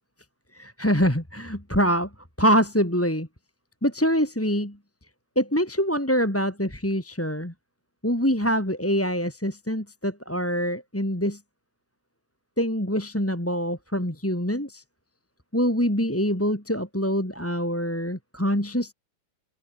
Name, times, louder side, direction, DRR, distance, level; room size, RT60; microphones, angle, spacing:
voice 1, 0.5-2.1 2.4-3.3 3.8-4.8 5.3-7.5 8.0-11.4 12.6-14.8 15.5-18.9, equal, 5° left, 2.9 m, -25 dB
open air
omnidirectional pair, 3.5 m